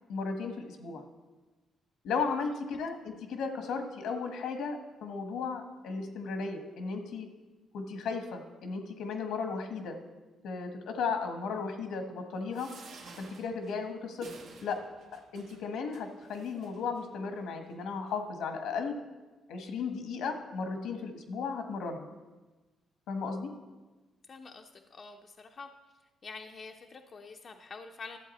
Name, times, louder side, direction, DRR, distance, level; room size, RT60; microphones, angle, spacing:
voice 1, 0.1-1.0 2.0-7.3 7.7-10.0 10.4-12.7 13.2-14.3 14.6-14.8 15.1-18.9 19.5-22.1 23.1-23.5, left 5 dB, 80° left, 6 dB, 1.3 m, -35 dB
sound 1, 12.5-17.1 17.7-17.8 18.1-18.2, right 4 dB, 80° right, 1.5 m, -52 dB
voice 2, 24.3-25.7 26.2-28.2, left 4 dB, 45° left, 4 dB, 0.6 m, -46 dB
12.0 x 7.4 x 4.2 m, 1.2 s
cardioid pair, 90°, 0 cm